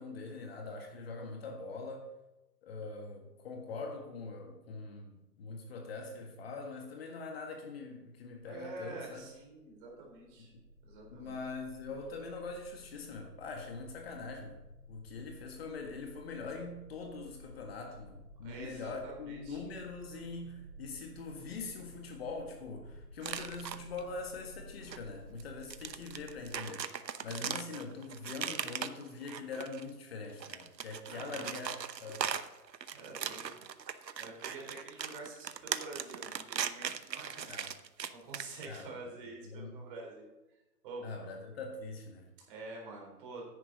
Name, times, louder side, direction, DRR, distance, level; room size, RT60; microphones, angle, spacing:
voice 1, 0.0-2.1 2.6-9.2 11.1-14.6 14.9-32.3 37.5-37.7 38.6-39.2 39.4-39.8 41.0-42.3, left 3 dB, 35° left, 2 dB, 1.7 m, -43 dB
voice 2, 8.4-10.5 10.8-11.4 18.4-19.6 31.0-31.5 32.9-33.7 34.1-37.5 38.1-40.3 40.8-41.1 42.5-43.5, right 3 dB, 30° right, -1 dB, 3.8 m, -47 dB
sound 1, 9.4-26.5, left 1 dB, 50° right, 2.4 m, -54 dB
sound 2, 23.2-24.0 24.9-25.0 25.4-29.9 30.3-38.8, right 7 dB, 80° right, 0.9 m, -39 dB
10.0 x 9.2 x 5.3 m, 1.0 s
hypercardioid pair, 145°, 49 cm